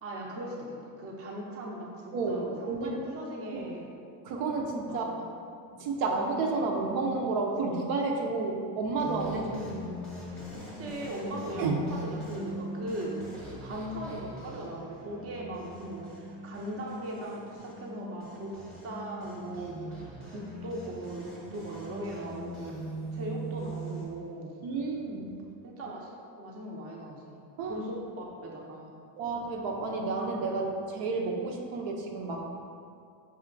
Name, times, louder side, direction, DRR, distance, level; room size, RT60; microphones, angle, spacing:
voice 1, 0.0-3.9 4.9-5.2 9.3-10.0 10.5-18.6 18.8-24.6 25.6-26.1 26.3-27.4 27.7-28.9, right 1 dB, 30° right, -2 dB, 0.6 m, -39 dB
voice 2, 2.1-3.0 3.5-3.7 4.2-5.3 5.8-9.5 11.6-11.8 19.6-19.7 24.6-25.4 27.6-27.8 29.2-32.4, right 3 dB, 65° right, 0 dB, 0.7 m, -31 dB
sound 1, 9.0-24.0, right 1 dB, ahead, 0.8 m, -41 dB
5.6 x 2.8 x 2.5 m, 2.4 s
supercardioid pair, 115°, 50 cm